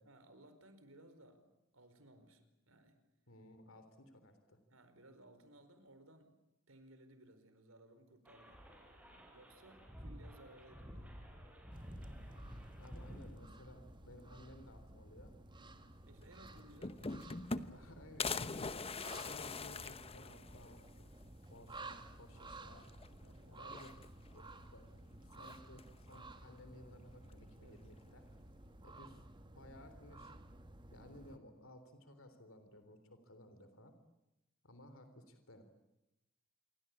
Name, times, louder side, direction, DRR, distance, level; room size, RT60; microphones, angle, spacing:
voice 1, 0.0-3.0 4.7-6.4 6.7-8.6 9.3-11.2 15.6-17.9 23.2-23.6 27.6-27.8, right 1 dB, 80° right, 9 dB, 4.7 m, -61 dB
voice 2, 3.3-4.6 12.8-15.3 17.7-18.6 19.1-22.9 23.5-23.9 24.3-28.2 28.8-29.2 29.6-30.3 30.9-33.9 34.6-35.6, left 1 dB, 70° left, 9 dB, 3.6 m, -57 dB
sound 1, 8.2-13.3, equal, 5° right, 6.9 m, -52 dB
sound 2, 11.7-31.4, right 2 dB, 25° right, 1.8 m, -55 dB
sound 3, 16.2-16.3 16.6-17.9 18.2-20.8 21.2-21.3 21.6-21.7 22.8-23.3 23.7-24.4 25.4-26.0, left 4 dB, 30° left, 0.9 m, -42 dB
28.0 x 23.5 x 8.7 m, 0.92 s
head